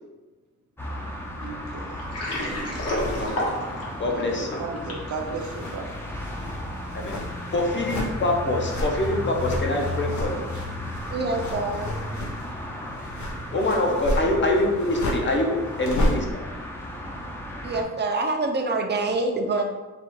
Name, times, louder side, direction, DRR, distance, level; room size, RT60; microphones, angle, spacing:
sound 1, 0.8-17.8, left 1 dB, 10° left, 0.6 m, -34 dB
voice 1, 1.4-2.0 4.1-6.0, right 3 dB, 75° right, 2 dB, 0.8 m, -34 dB
Water, 1.9-5.1, left 1 dB, 55° left, 1.3 m, -30 dB
sound 2, 2.0-4.8 5.1-16.3, left 1 dB, 75° left, 1.0 m, -33 dB
voice 2, 3.2-3.5 4.0-4.6 6.9-7.2 7.5-10.5 13.5-16.2, left 2 dB, 40° left, 1 dB, 0.8 m, -25 dB
voice 3, 11.1-12.0 17.6-19.6, right 3 dB, 35° right, 3 dB, 0.6 m, -26 dB
4.0 x 2.4 x 4.6 m, 1.2 s
cardioid pair, 105°, 29 cm